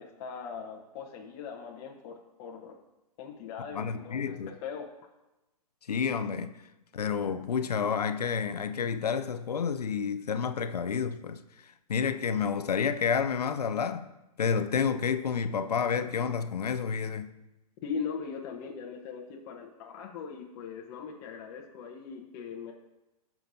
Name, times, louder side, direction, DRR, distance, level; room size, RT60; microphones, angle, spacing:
voice 1, 0.0-2.8 3.2-4.9 17.8-22.7, left 6 dB, 40° left, 1.1 m, -40 dB
voice 2, 3.7-4.5 5.9-6.5 6.9-14.1 14.4-17.3, left 6 dB, 85° left, 0.6 m, -30 dB
15.0 x 6.0 x 2.7 m
hypercardioid pair, 125°, 20 cm